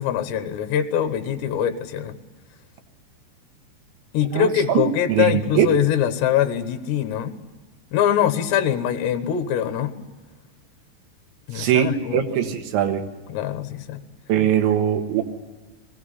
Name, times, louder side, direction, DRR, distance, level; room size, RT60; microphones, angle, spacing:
voice 1, 0.0-2.2 4.1-7.4 7.9-9.9 11.5-12.5 13.3-14.0, left 9 dB, 75° left, 8 dB, 3.1 m, -23 dB
voice 2, 4.3-4.8 5.1-5.7 11.6-13.1 14.3-15.2, right 10 dB, 75° right, 6 dB, 3.7 m, -21 dB
21.0 x 16.5 x 9.8 m, 1.4 s
omnidirectional pair, 5.4 m